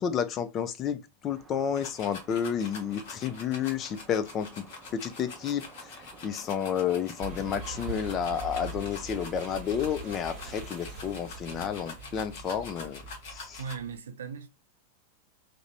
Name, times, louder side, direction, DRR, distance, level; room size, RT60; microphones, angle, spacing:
voice 1, 0.0-4.7 4.9-13.0 13.3-13.6, left 8 dB, 30° left, 0.4 m, -31 dB
sound 1, 1.3-8.9, right 3 dB, 15° right, 0.6 m, -53 dB
sound 2, 1.7-13.7, left 4 dB, 50° left, 0.8 m, -45 dB
sound 3, 7.2-14.0, right 3 dB, 40° right, 0.9 m, -42 dB
voice 2, 13.6-14.5, right 6 dB, 65° right, 0.4 m, -38 dB
2.5 x 2.0 x 2.7 m
figure-of-eight pair, 90°, 0 cm